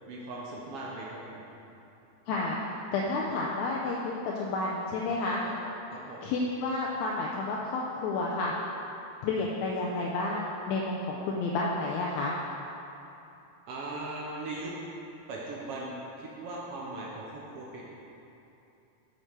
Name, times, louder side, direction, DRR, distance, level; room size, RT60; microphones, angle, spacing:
voice 1, 0.1-1.4 5.4-5.5 5.9-6.2 13.7-14.7 15.3-17.8, right 2 dB, 70° right, -4 dB, 1.4 m, -39 dB
voice 2, 2.3-2.6 2.9-5.4 6.2-8.5 9.2-12.3, left 3 dB, 80° left, -3 dB, 1.8 m, -30 dB
6.6 x 6.0 x 4.5 m, 2.9 s
omnidirectional pair, 3.5 m